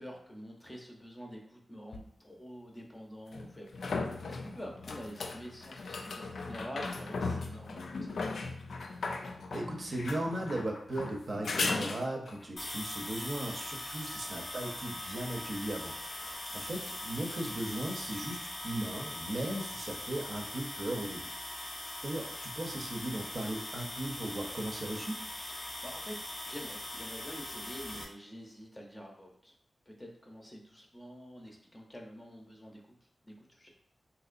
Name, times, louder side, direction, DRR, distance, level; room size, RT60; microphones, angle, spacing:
voice 1, 0.0-8.5 14.2-14.3 25.5-26.1 26.4-29.5 29.9-33.7, equal, 15° left, 0 dB, 0.6 m, -47 dB
sound 1, 1.9-2.0 3.3-12.4 15.9-16.0, left 3 dB, 80° left, 0.3 m, -37 dB
voice 2, 9.5-21.3 22.0-25.2, right 1 dB, 50° right, 0 dB, 0.6 m, -37 dB
sound 2, 12.6-28.0, left 1 dB, 50° left, 0.7 m, -41 dB
3.7 x 2.9 x 2.5 m, 0.65 s
wide cardioid pair, 125°, 0 cm